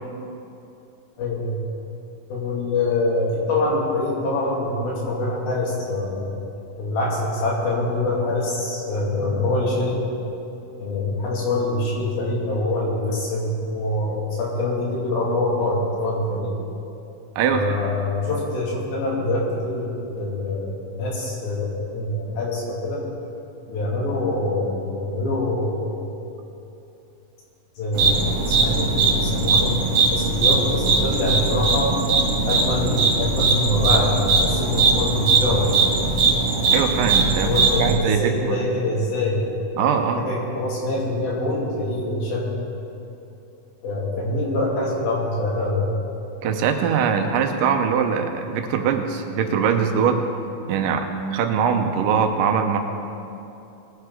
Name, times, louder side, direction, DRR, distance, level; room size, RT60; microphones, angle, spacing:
voice 1, 1.2-1.6 2.3-6.3 6.8-9.9 10.8-16.6 17.5-23.0 23.7-26.1 27.8-29.7 30.1-32.0 32.5-36.0 37.4-39.5 40.2-42.6 43.8-45.9, left 2 dB, 85° left, -4 dB, 4.1 m, -24 dB
sound 1, 27.9-38.0, right 4 dB, 50° right, 2.6 m, -20 dB
voice 2, 36.7-37.5 37.8-38.6 39.8-40.3 46.4-50.2 50.7-52.8, right 7 dB, 75° right, 5 dB, 2.3 m, -22 dB
19.5 x 10.0 x 3.7 m, 2.8 s
omnidirectional pair, 4.1 m